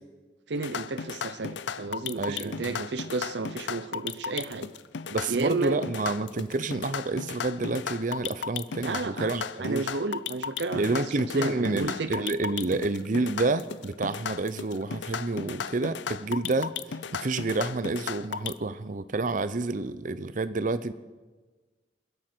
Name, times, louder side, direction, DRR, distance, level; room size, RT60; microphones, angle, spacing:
voice 1, 0.5-4.7 5.3-5.8 8.8-9.3 9.6-12.3 12.7-12.8, right 3 dB, 80° right, 11 dB, 0.7 m, -32 dB
sound 1, 0.6-18.5, left 6 dB, 90° left, 0.6 m, -35 dB
voice 2, 2.2-2.7 5.1-9.8 10.8-16.7 17.1-20.9, right 3 dB, 45° right, 13 dB, 0.6 m, -29 dB
28.0 x 11.0 x 4.5 m, 1.3 s
head